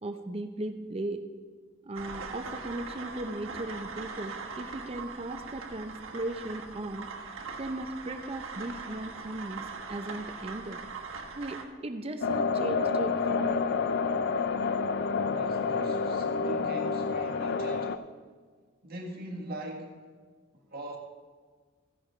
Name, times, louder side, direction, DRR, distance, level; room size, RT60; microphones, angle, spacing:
voice 1, 0.0-1.2 1.8-7.1 7.6-10.8 11.4-13.6, right 1 dB, 30° right, 7 dB, 0.6 m, -37 dB
sound 1, 1.9-11.6, right 4 dB, 85° right, 1.3 m, -41 dB
sound 2, 12.2-18.0, left 4 dB, 55° left, 0.4 m, -28 dB
voice 2, 15.2-18.0 18.8-20.0 20.5-21.0, right 1 dB, 50° right, 0 dB, 1.7 m, -41 dB
15.0 x 10.0 x 3.2 m, 1.5 s
head